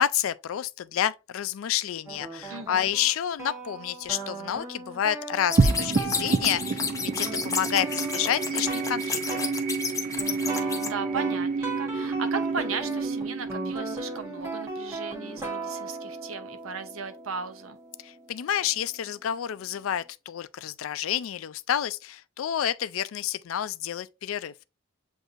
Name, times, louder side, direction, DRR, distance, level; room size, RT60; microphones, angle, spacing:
voice 1, 0.0-9.4 18.0-24.5, left 10 dB, 85° left, 0.4 m, -29 dB
sound 1, 2.1-8.9 9.3-9.5 10.2-19.2, right 2 dB, 15° right, 1.0 m, -38 dB
voice 2, 2.5-2.9 10.5-17.8, right 5 dB, 85° right, 0.8 m, -36 dB
sound 2, 5.5-10.9, left 5 dB, 15° left, 0.6 m, -31 dB
sound 3, 5.6-16.2, right 3 dB, 40° right, 0.4 m, -29 dB
7.9 x 2.6 x 2.5 m
head